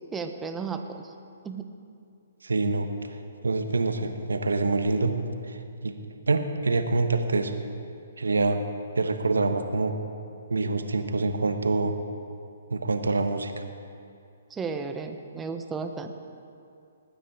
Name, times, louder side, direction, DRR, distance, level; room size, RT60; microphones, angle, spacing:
voice 1, 0.1-1.1 1.4-1.6 14.5-16.1, right 5 dB, 10° right, 6 dB, 0.9 m, -34 dB
voice 2, 2.4-2.9 3.4-5.1 5.4-5.9 6.3-7.5 8.2-8.6 9.0-9.9 10.5-11.9 12.7-13.6, right 3 dB, 85° right, 7 dB, 1.2 m, -25 dB
20.0 x 9.2 x 4.9 m, 2.5 s
hypercardioid pair, 135°, 0 cm